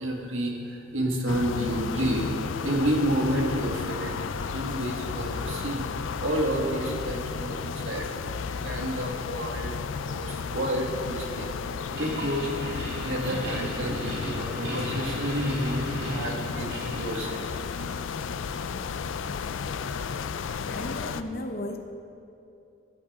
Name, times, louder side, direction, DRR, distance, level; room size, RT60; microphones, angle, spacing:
voice 1, 0.0-2.3 2.6-4.1 4.5-5.9 6.2-8.1 8.5-11.5 12.0-17.6 18.0-18.1, equal, 85° right, 0 dB, 1.8 m, -30 dB
sound 1, 1.3-21.2, left 5 dB, 85° left, 0.4 m, -33 dB
sound 2, 11.8-17.5, right 1 dB, 65° right, 3.1 m, -38 dB
voice 2, 20.7-21.8, left 1 dB, 50° left, 5 dB, 0.8 m, -34 dB
13.5 x 11.0 x 3.7 m, 2.7 s
head